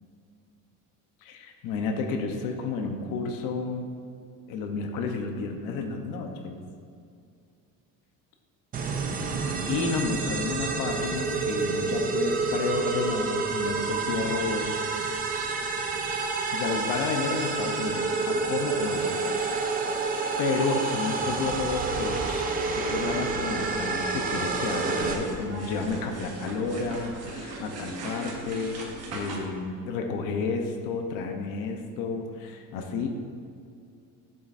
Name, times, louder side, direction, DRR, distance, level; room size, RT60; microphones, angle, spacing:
voice 1, 1.2-3.9 4.5-6.6 9.7-14.9 16.1-19.2 20.4-33.1, left 4 dB, 70° left, 3 dB, 1.0 m, -31 dB
sound 1, 8.7-25.1, right 4 dB, 25° right, 0.6 m, -29 dB
sound 2, 24.3-29.4, right 2 dB, 45° right, 1.5 m, -38 dB
11.5 x 7.7 x 2.7 m, 2.3 s
cardioid pair, 170°, 34 cm